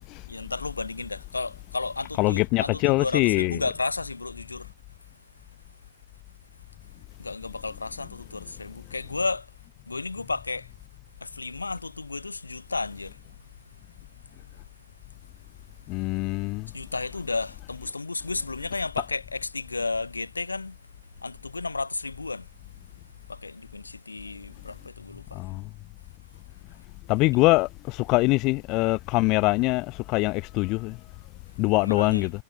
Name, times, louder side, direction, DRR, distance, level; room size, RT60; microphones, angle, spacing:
voice 1, 0.3-4.7 7.2-9.4 9.9-10.7 11.2-13.2 16.7-20.7 21.2-22.4 23.3-25.4 31.8-32.3, left 3 dB, 80° left, 2.8 m, -32 dB
voice 2, 2.2-3.6 15.9-16.7 25.3-25.7 27.1-31.0 31.6-32.3, left 23 dB, 40° left, 2.4 m, -23 dB
figure-of-eight pair, 90°, 0 cm